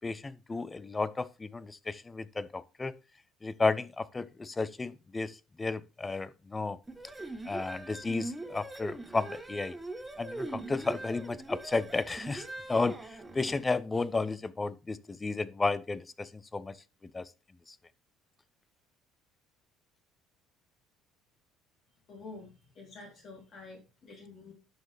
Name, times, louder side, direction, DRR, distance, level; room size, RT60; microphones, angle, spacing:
voice 1, 0.0-3.0 3.4-6.8 7.5-9.8 10.2-16.8 17.0-17.3 17.7-17.8, left 3 dB, 15° left, 0.5 m, -33 dB
sound 1, 6.9-13.7, right 2 dB, 10° right, 1.1 m, -42 dB
voice 2, 22.1-24.5, left 3 dB, 45° left, 3.3 m, -48 dB
11.0 x 6.6 x 3.3 m
cardioid pair, 125°, 0 cm